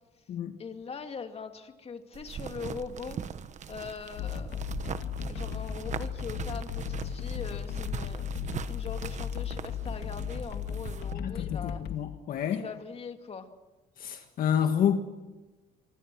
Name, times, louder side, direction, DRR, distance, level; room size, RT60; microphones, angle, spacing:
voice 1, 0.6-3.2 3.7-8.3 8.7-11.8 12.5-13.5, left 6 dB, 35° left, 2.4 m, -41 dB
sound 1, 2.1-11.1, right 8 dB, 45° right, 1.3 m, -41 dB
sound 2, 4.1-12.0, left 8 dB, 75° left, 2.3 m, -36 dB
voice 2, 11.1-12.6 14.0-15.0, left 8 dB, 60° left, 1.7 m, -29 dB
25.5 x 24.5 x 6.3 m
cardioid pair, 110°, 17 cm